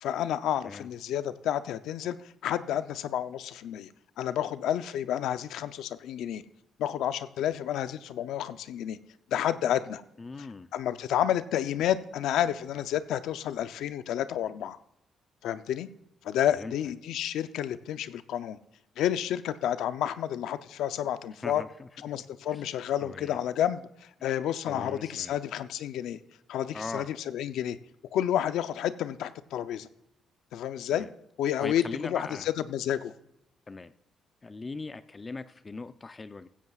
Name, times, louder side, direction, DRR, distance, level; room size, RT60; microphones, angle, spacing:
voice 1, 0.0-2.2 2.4-3.9 4.2-6.4 6.8-9.0 9.3-10.0 10.7-14.8 15.4-15.9 16.2-18.6 19.0-21.6 22.0-26.2 26.5-27.8 28.1-29.9 30.5-31.1 31.4-33.1, left 10 dB, 85° left, 12 dB, 0.6 m, -30 dB
voice 2, 10.2-10.7 16.5-16.7 21.4-22.2 22.5-22.7 23.0-23.4 24.7-25.4 26.7-27.1 30.9-31.1 31.6-32.5 33.7-33.9 34.4-36.5, left 3 dB, 25° left, 11 dB, 0.5 m, -40 dB
15.5 x 15.5 x 2.4 m, 0.82 s
cardioid pair, 105°, 0 cm